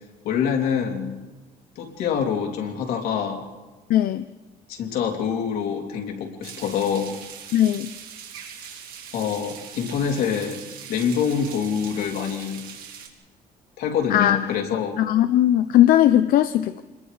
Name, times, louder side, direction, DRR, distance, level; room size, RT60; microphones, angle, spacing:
voice 1, 0.2-1.1 1.8-3.4 4.7-7.1 9.1-10.6 10.9-12.6 13.8-15.0, left 7 dB, 90° left, 1 dB, 3.0 m, -25 dB
voice 2, 3.9-4.3 7.5-7.9 14.1-14.4 15.0-16.8, left 12 dB, 70° left, 11 dB, 0.6 m, -18 dB
sound 1, 6.4-13.1, right 8 dB, 70° right, 3.1 m, -41 dB
27.0 x 21.0 x 5.0 m, 1.2 s
cardioid pair, 170°, 15 cm